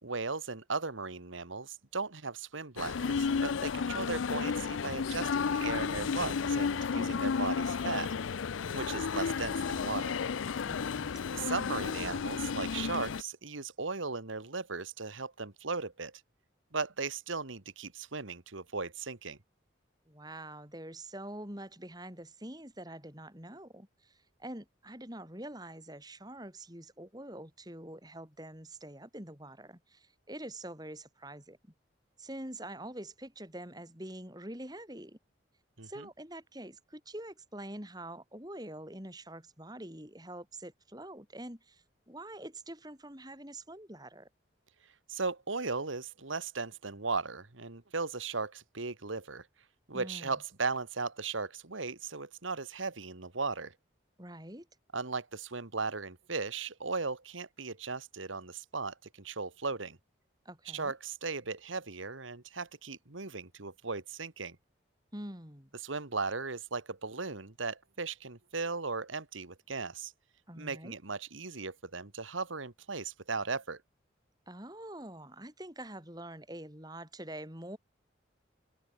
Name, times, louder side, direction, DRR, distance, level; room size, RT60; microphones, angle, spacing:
voice 1, 0.0-8.2 8.7-10.2 11.3-16.1 16.7-19.4 35.8-36.1 45.1-49.5 49.9-53.7 54.9-60.0 60.7-64.6 65.8-70.1 70.6-73.8, right 4 dB, 85° right, 1.9 m, -37 dB
sound 1, 2.8-13.2, left 5 dB, 80° left, 0.5 m, -32 dB
voice 2, 6.9-7.3 10.6-11.1 20.1-31.6 32.2-35.2 35.8-44.3 49.9-50.4 54.2-54.7 60.4-60.9 65.1-65.7 70.5-70.9 74.5-77.8, right 1 dB, 20° right, 6.6 m, -45 dB
head